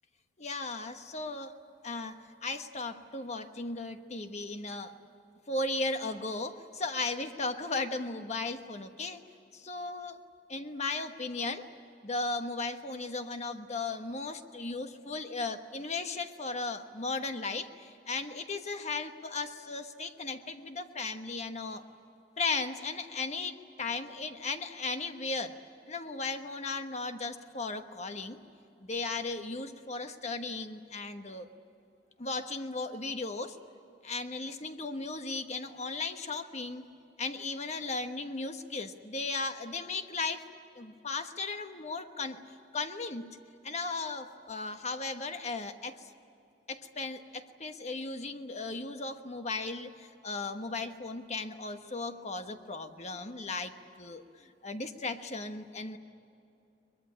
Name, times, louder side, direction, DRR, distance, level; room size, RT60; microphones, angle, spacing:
voice 1, 0.4-1.5 1.8-4.9 5.5-9.2 9.5-10.2 10.5-11.7 12.0-21.8 22.4-25.6 25.9-28.4 28.8-31.5 32.2-33.6 34.0-36.9 37.2-40.4 40.7-42.4 42.7-43.4 43.6-46.1 46.7-56.0, left 3 dB, 40° left, 7 dB, 1.3 m, -36 dB
23.0 x 21.5 x 9.8 m, 2.7 s
head